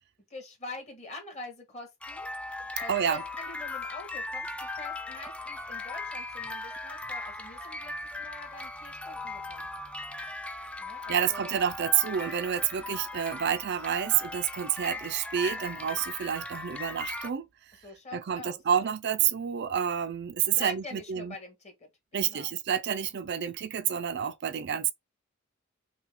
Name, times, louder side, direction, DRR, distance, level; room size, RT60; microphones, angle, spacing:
voice 1, 0.3-2.3 2.8-7.9 8.2-9.7 10.8-11.5 17.8-18.6 20.5-22.5, left 2 dB, 35° left, 1.7 m, -44 dB
sound 1, 2.0-17.3, left 2 dB, 5° left, 0.4 m, -38 dB
voice 2, 2.9-3.2 11.1-17.5 18.1-21.4 22.1-24.9, right 9 dB, 55° right, 0.4 m, -29 dB
5.8 x 2.3 x 3.6 m
head